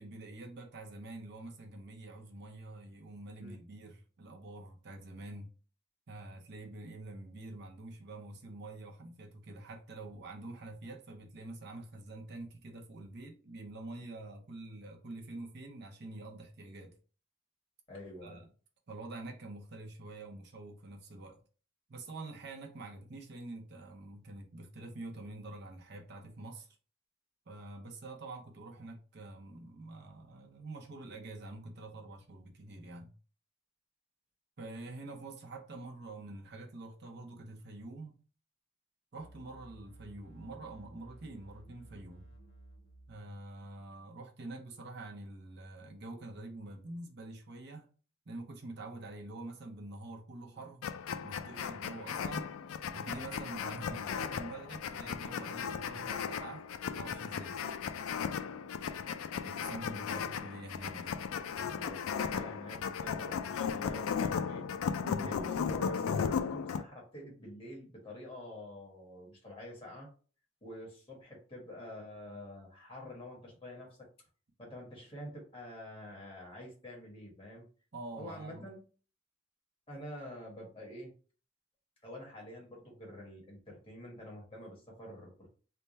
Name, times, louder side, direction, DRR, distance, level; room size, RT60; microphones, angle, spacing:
voice 1, 0.0-5.5 6.1-16.9 18.2-18.5 18.9-21.4 21.9-26.7 27.5-33.1 34.6-38.2 39.1-42.3 43.1-47.9 48.3-50.8 51.2-52.5 52.9-57.6 59.3-61.2 65.0-65.4 77.9-78.7, right 2 dB, 50° right, 0.6 m, -46 dB
voice 2, 17.9-18.4 50.5-50.6 60.1-60.3 61.7-64.7 65.2-70.1 70.6-74.1 74.6-77.7 78.2-78.8 79.9-81.1 82.0-85.5, left 1 dB, 25° left, 1.3 m, -47 dB
sound 1, 39.2-43.3, right 2 dB, 65° left, 1.0 m, -55 dB
sound 2, 50.8-66.8, left 7 dB, 85° left, 0.4 m, -36 dB
3.4 x 2.1 x 4.1 m
head